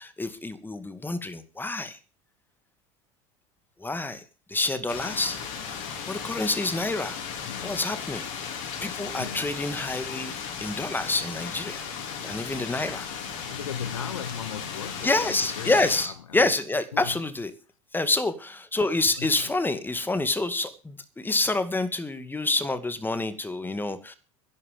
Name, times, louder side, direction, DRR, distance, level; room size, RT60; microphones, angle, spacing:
voice 1, 0.0-2.0 3.8-4.2 4.5-5.4 6.1-7.2 7.6-8.2 8.8-10.3 10.6-11.8 12.2-13.1 15.0-17.5 17.9-24.2, left 2 dB, 10° left, 2.2 m, -27 dB
sound 1, 4.9-16.1, left 7 dB, 65° left, 3.9 m, -36 dB
voice 2, 7.4-7.9 9.2-9.5 13.4-15.8 16.0-16.5 16.9-17.2 19.2-19.4, left 7 dB, 85° left, 0.7 m, -37 dB
11.5 x 11.0 x 6.7 m
hypercardioid pair, 75°, 17 cm